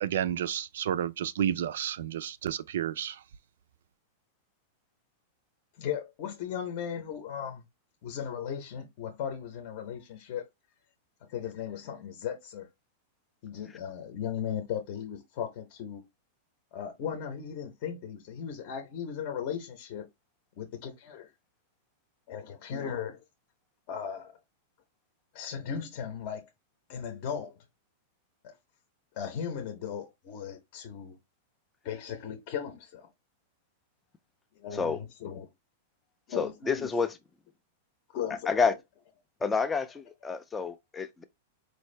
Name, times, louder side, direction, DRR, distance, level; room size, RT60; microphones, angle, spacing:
voice 1, 0.0-3.2, right 10 dB, 65° right, 0.4 m, -31 dB
voice 2, 5.8-7.6 8.0-10.5 11.3-12.7 13.4-16.1 16.7-20.1 20.6-21.3 22.3-23.2 23.9-24.4 25.3-26.5 26.9-27.6 28.4-28.5 29.1-31.2 31.8-33.1 34.6-35.5 36.3-36.9 38.1-38.8, left 8 dB, 35° left, 0.7 m, -37 dB
voice 3, 36.4-37.1 38.5-38.7 39.4-41.2, left 5 dB, 10° left, 0.3 m, -29 dB
4.5 x 2.6 x 3.2 m
supercardioid pair, 180°, 0 cm